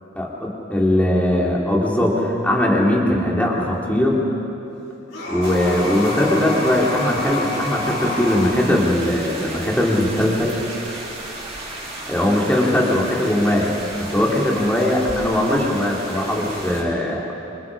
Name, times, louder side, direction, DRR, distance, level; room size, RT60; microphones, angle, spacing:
voice 1, 0.1-4.2 5.3-10.6 12.1-17.2, left 1 dB, 10° left, -3 dB, 3.2 m, -20 dB
sound 1, 5.1-8.6, left 2 dB, 65° left, 5.8 m, -28 dB
sound 2, 5.4-16.8, right 2 dB, 30° right, 6.2 m, -34 dB
27.0 x 27.0 x 4.9 m, 2.9 s
head